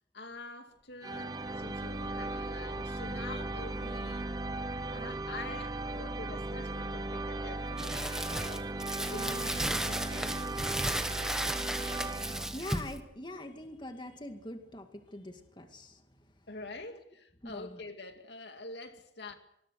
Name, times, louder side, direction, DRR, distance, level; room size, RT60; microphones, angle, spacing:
voice 1, 0.1-4.3 4.9-10.4 16.5-19.3, left 2 dB, 80° left, 2.4 m, -46 dB
sound 1, 1.0-13.0, right 2 dB, 20° right, 0.8 m, -37 dB
Crumpling crinkling, 7.8-13.0, right 1 dB, 5° right, 1.4 m, -35 dB
voice 2, 12.5-16.0 17.4-17.8, left 1 dB, 25° left, 2.2 m, -43 dB
25.0 x 21.0 x 6.5 m
head